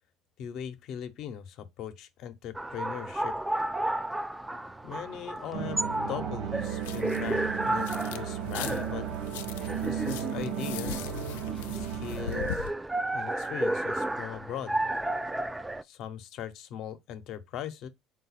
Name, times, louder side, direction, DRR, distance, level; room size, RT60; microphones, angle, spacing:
voice 1, 0.4-3.3 4.8-5.8 6.1-9.0 9.8-11.1 11.7-12.6 13.1-14.8 15.8-17.9, left 9 dB, 60° left, 0.6 m, -39 dB
sound 1, 2.5-15.8, right 1 dB, 10° right, 0.3 m, -33 dB
sound 2, 5.5-12.5, right 9 dB, 75° right, 0.6 m, -34 dB
sound 3, 6.8-8.2 8.5-12.7, left 10 dB, 90° left, 0.3 m, -40 dB
3.9 x 2.3 x 4.1 m
supercardioid pair, 90°, 0 cm